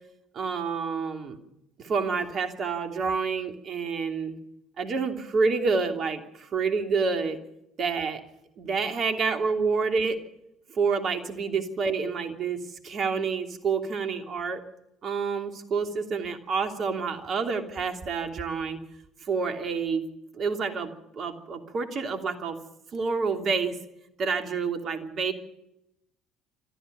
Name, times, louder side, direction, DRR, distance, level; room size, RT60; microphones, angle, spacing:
voice 1, 0.3-1.4 1.8-4.4 4.8-7.4 7.8-8.2 8.6-10.2 10.7-14.6 15.0-18.8 19.2-20.1 20.3-22.6 22.9-23.7 24.2-25.3, right 5 dB, 45° right, 6 dB, 3.0 m, -28 dB
26.0 x 14.0 x 7.0 m, 0.84 s
hypercardioid pair, 60°, 0 cm